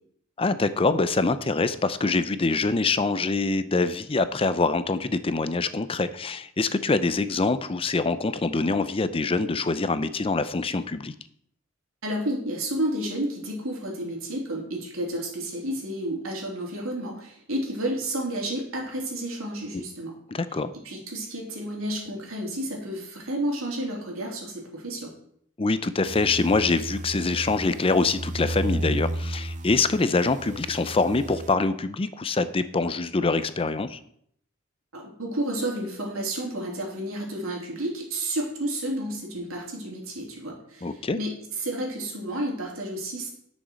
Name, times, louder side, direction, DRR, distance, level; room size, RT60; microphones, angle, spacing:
voice 1, 0.4-11.1 19.7-19.8 20.3-20.7 25.6-34.0 40.8-41.2, left 3 dB, 25° left, 13 dB, 0.5 m, -25 dB
voice 2, 12.0-20.1 20.8-25.1 34.9-43.3, right 1 dB, 85° right, -1 dB, 3.3 m, -31 dB
sound 1, 26.1-31.6, right 1 dB, 35° right, 0.5 m, -33 dB
10.5 x 6.4 x 6.4 m, 0.68 s
head